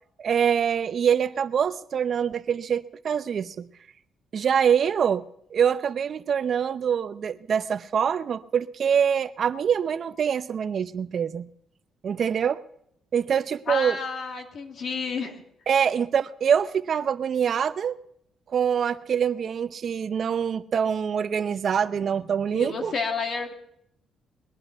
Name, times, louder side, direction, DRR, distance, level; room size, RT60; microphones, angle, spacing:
voice 1, 0.2-3.7 4.3-5.2 5.5-11.5 12.0-12.6 13.1-14.0 15.7-18.0 18.5-22.9, right 7 dB, 55° right, 0.7 m, -24 dB
voice 2, 13.7-15.4 22.5-23.5, left 4 dB, 55° left, 2.2 m, -30 dB
20.5 x 11.0 x 5.8 m
cardioid pair, 90°, 0 cm